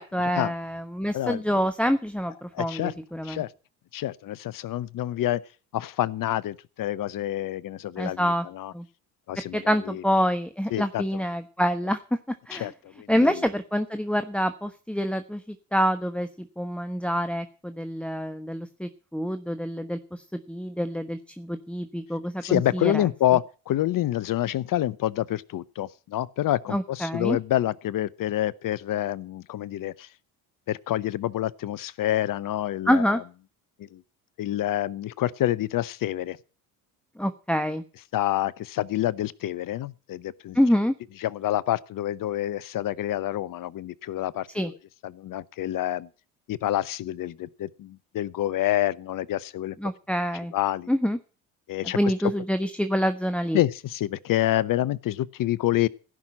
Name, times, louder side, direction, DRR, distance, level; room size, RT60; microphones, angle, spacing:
voice 1, 0.0-3.4 8.0-8.4 8.7-8.8 9.5-12.7 13.1-23.1 26.7-27.4 32.9-33.2 37.2-37.8 40.5-40.9 44.5-44.7 49.8-50.5 50.9-51.2 51.9-53.6, equal, 5° left, 1.1 m, -26 dB
voice 2, 2.5-2.9 3.2-3.5 3.9-5.4 5.7-8.7 9.3-10.0 10.7-11.2 12.5-13.4 22.4-30.1 30.7-33.2 33.9-34.0 34.4-36.4 38.1-40.6 41.2-44.8 45.0-46.1 46.5-49.8 50.5-50.9 51.7-52.1 53.5-55.9, left 13 dB, 45° left, 0.8 m, -27 dB
16.0 x 6.1 x 8.7 m
hypercardioid pair, 65°, 44 cm